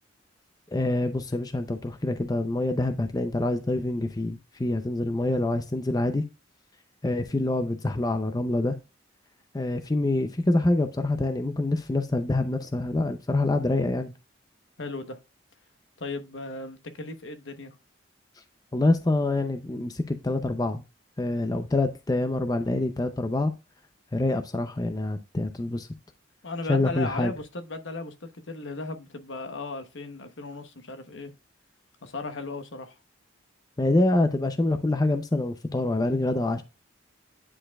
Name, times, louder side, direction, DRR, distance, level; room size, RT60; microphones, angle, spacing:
voice 1, 0.7-6.3 7.0-8.8 9.5-14.1 18.7-20.8 21.2-23.5 24.1-25.9 26.7-27.3 33.8-36.6, left 2 dB, 20° left, 0.5 m, -26 dB
voice 2, 14.8-15.2 16.0-17.8 26.4-31.3 32.0-33.0, left 3 dB, 70° left, 1.0 m, -36 dB
10.0 x 4.3 x 2.3 m
head